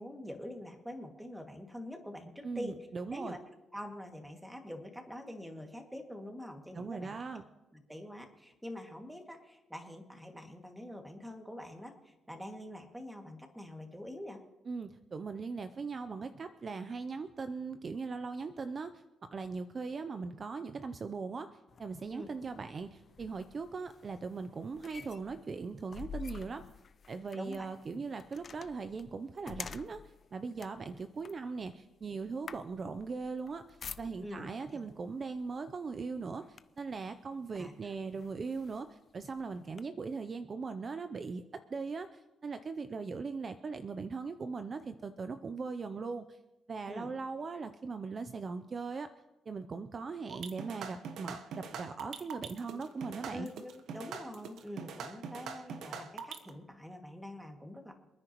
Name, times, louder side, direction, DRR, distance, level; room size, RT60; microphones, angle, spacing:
voice 1, 0.0-3.4 3.7-7.2 7.7-14.4 22.1-22.3 27.3-28.0 34.2-34.5 34.7-34.8 37.5-37.9 46.9-47.1 53.3-57.9, left 1 dB, 5° right, 3 dB, 2.2 m, -45 dB
voice 2, 2.4-3.4 6.7-7.4 14.7-26.6 27.1-30.0 30.3-41.4 41.7-46.4 46.7-49.1 49.5-53.5, right 4 dB, 40° right, 9 dB, 0.6 m, -40 dB
sound 1, 21.7-34.5 35.4-35.6 36.0-37.0 37.6-37.7 38.2-39.8, left 6 dB, 45° left, 0.6 m, -49 dB
sound 2, 50.3-56.5, right 6 dB, 75° right, 1.2 m, -43 dB
28.0 x 9.8 x 3.1 m, 1.0 s
cardioid pair, 90°, 0 cm